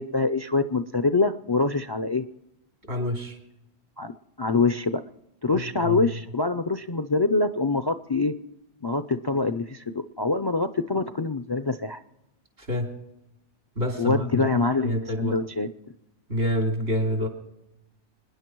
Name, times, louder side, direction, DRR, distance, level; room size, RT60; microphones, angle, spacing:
voice 1, 0.0-2.2 4.0-4.1 4.4-5.0 5.4-8.3 8.8-12.0 14.0-15.7, left 3 dB, 35° left, 10 dB, 0.4 m, -25 dB
voice 2, 2.9-3.4 5.5-6.0 12.6-12.9 13.8-15.4 16.3-17.3, equal, 80° right, 2 dB, 3.2 m, -27 dB
27.0 x 10.5 x 4.6 m, 0.93 s
omnidirectional pair, 1.1 m